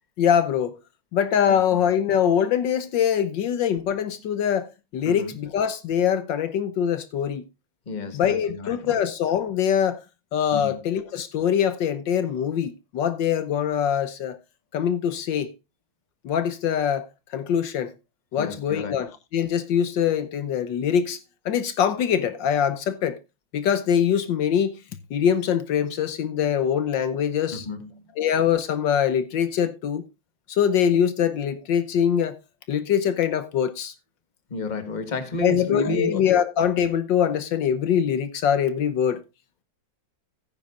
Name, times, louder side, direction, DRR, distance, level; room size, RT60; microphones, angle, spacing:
voice 1, 0.2-0.8 1.1-4.7 4.9-7.4 8.1-10.0 10.3-14.4 14.7-15.5 16.2-17.9 18.3-21.2 21.4-23.2 23.5-24.8 25.1-27.7 28.2-30.0 30.5-32.4 32.7-33.9 35.4-39.2, left 8 dB, 70° left, 1.5 m, -23 dB
voice 2, 7.9-8.9 10.5-10.8 18.4-19.0 27.5-28.0 34.5-36.2, left 2 dB, 25° left, 1.4 m, -31 dB
16.0 x 9.5 x 2.4 m
omnidirectional pair, 2.1 m